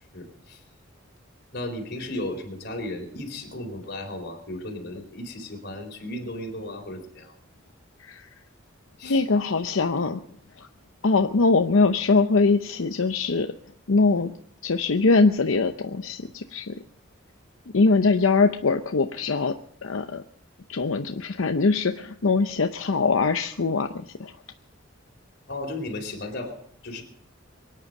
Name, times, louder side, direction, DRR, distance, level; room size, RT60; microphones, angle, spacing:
voice 1, 0.1-0.6 1.5-7.3 9.0-9.2 25.5-27.0, left 1 dB, 55° left, 2 dB, 4.1 m, -35 dB
voice 2, 9.0-10.2 10.6-10.7 11.0-13.5 13.9-14.3 14.6-16.8 17.7-19.6 19.8-20.2 20.7-24.3, left 3 dB, 85° left, 7 dB, 0.7 m, -22 dB
23.5 x 9.9 x 5.3 m, 0.67 s
head